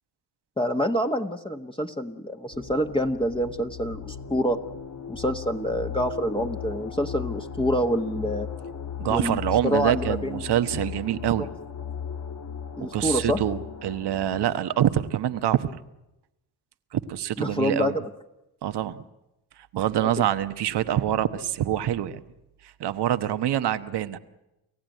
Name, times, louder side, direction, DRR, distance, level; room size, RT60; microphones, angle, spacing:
voice 1, 0.6-4.6 5.1-8.5 9.1-10.4 12.8-13.4 17.4-18.0 20.0-20.1, equal, 15° left, 3 dB, 1.3 m, -27 dB
sound 1, 2.5-14.5, left 8 dB, 45° left, 1.4 m, -37 dB
voice 2, 9.0-11.5 12.9-15.8 16.9-17.9 18.6-19.0 19.7-22.2 22.8-24.2, right 11 dB, 80° right, 11 dB, 1.2 m, -25 dB
29.5 x 15.0 x 9.2 m, 0.94 s
cardioid pair, 70°, 40 cm